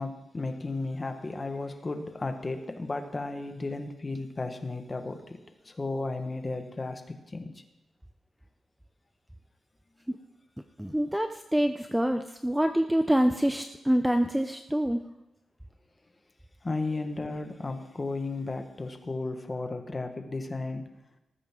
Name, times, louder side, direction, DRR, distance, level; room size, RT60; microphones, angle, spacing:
voice 1, 0.0-5.4 5.6-7.0 7.3-7.5 16.6-20.8, left 3 dB, 25° left, 6 dB, 1.3 m, -34 dB
voice 2, 10.8-15.0, equal, 5° right, 7 dB, 0.5 m, -26 dB
19.0 x 14.0 x 3.7 m, 0.95 s
wide cardioid pair, 160°, 0 cm